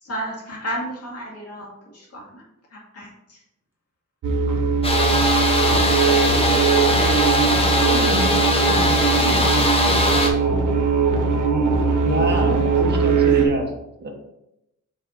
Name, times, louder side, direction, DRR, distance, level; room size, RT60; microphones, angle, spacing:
voice 1, 0.0-2.4 2.7-3.4, equal, 55° left, -3 dB, 2.1 m, -33 dB
sound 1, 4.2-13.4, right 4 dB, 85° right, 1.0 m, -20 dB
sound 2, 4.8-10.3, left 1 dB, 20° left, 0.8 m, -20 dB
voice 2, 7.8-9.9 12.2-13.1, left 3 dB, 5° right, -5 dB, 1.6 m, -34 dB
voice 3, 12.0-13.7 14.0-14.1, right 2 dB, 35° right, 0 dB, 1.2 m, -26 dB
5.6 x 3.4 x 5.0 m, 0.85 s
wide cardioid pair, 165°, 30 cm